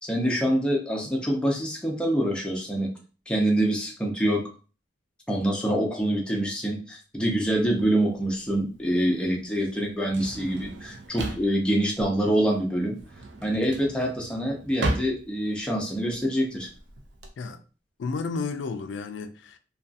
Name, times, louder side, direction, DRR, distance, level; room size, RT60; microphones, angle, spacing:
voice 1, 0.0-2.9 3.3-4.4 5.3-13.0 13.4-16.7, right 1 dB, 5° left, 0.5 m, -25 dB
Drawer open or close, 7.7-17.3, right 2 dB, 65° right, 0.5 m, -36 dB
voice 2, 18.0-19.6, left 4 dB, 70° left, 0.3 m, -32 dB
2.6 x 2.3 x 2.4 m
head